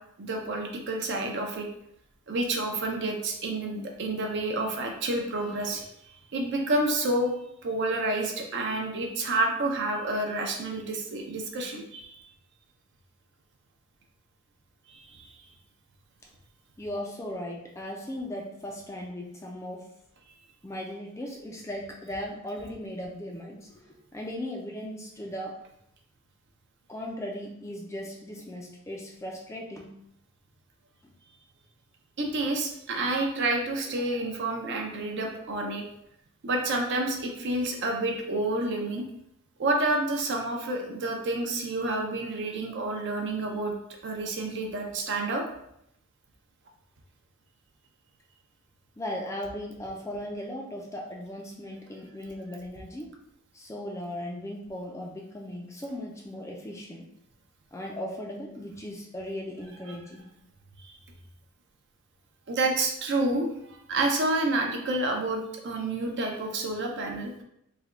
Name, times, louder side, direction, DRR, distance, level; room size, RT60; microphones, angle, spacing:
voice 1, 0.2-1.7 2.3-5.8 6.3-7.3 7.6-12.1 14.9-15.2 32.2-35.8 36.4-39.0 39.6-43.7 44.0-45.4 60.8-60.9 62.5-63.5 63.9-67.3, right 2 dB, 55° right, 2 dB, 0.6 m, -29 dB
voice 2, 16.8-19.9 20.6-25.6 26.9-29.9 34.0-34.5 49.0-53.1 53.5-57.1 57.7-60.3, left 1 dB, 15° left, -1 dB, 0.4 m, -37 dB
3.3 x 2.2 x 3.7 m, 0.77 s
head